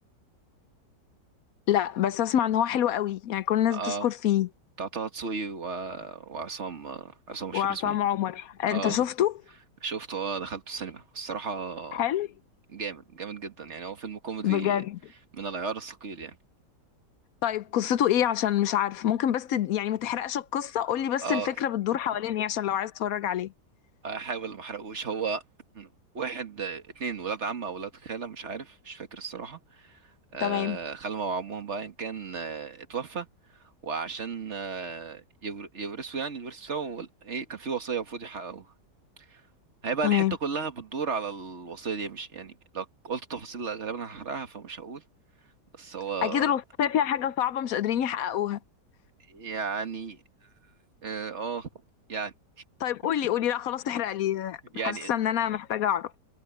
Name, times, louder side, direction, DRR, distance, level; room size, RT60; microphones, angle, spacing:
voice 1, 1.7-4.5 7.5-9.3 11.9-12.3 14.4-15.0 17.4-23.5 30.4-30.8 40.0-40.3 46.2-48.6 52.8-54.6 54.8-56.1, left 11 dB, 65° left, 0.9 m, -26 dB
voice 2, 3.7-4.1 4.8-8.0 8.7-9.1 9.8-12.0 12.7-14.8 15.3-16.4 21.2-21.6 24.0-25.4 25.7-25.9 26.1-30.0 30.3-33.3 33.8-38.7 39.3-39.4 39.8-45.0 45.8-46.6 49.3-50.2 51.0-51.7 52.1-52.3 54.7-55.1, right 5 dB, 40° right, 2.0 m, -34 dB
omnidirectional pair, 1.9 m